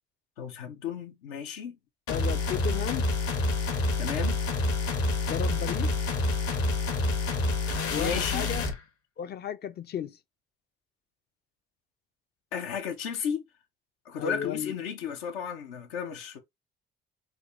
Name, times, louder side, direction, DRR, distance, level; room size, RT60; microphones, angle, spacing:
voice 1, 0.4-1.8 4.0-4.4 7.9-8.5 12.5-13.4 14.1-16.4, left 7 dB, 75° left, 0.7 m, -33 dB
sound 1, 2.1-8.8, left 2 dB, 50° left, 0.9 m, -28 dB
voice 2, 2.1-3.1 5.3-5.9 7.8-8.6 9.2-10.2 14.2-14.7, left 9 dB, 35° left, 0.4 m, -34 dB
3.5 x 2.3 x 2.4 m
hypercardioid pair, 55°, 30 cm